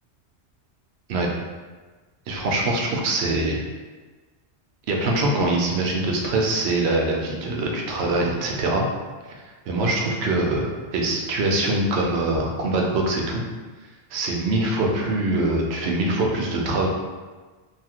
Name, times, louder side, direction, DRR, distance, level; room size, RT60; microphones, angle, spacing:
voice 1, 2.3-3.6 4.9-8.9 9.7-13.4 14.1-16.9, right 2 dB, 70° right, 0 dB, 0.8 m, -23 dB
2.7 x 2.4 x 2.8 m, 1.3 s
omnidirectional pair, 1.2 m